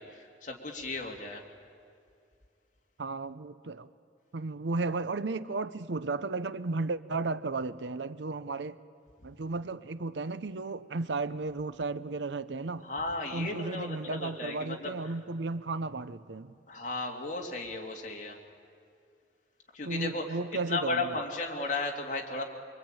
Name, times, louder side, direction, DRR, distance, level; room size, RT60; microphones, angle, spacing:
voice 1, 0.0-1.4 12.8-14.9 16.7-18.4 19.7-20.3 20.7-22.4, left 3 dB, 45° left, 2.7 m, -35 dB
voice 2, 3.0-3.9 4.3-8.8 9.2-12.8 13.3-16.5 19.8-21.2, right 3 dB, 85° right, 0.7 m, -34 dB
24.5 x 23.5 x 9.0 m
head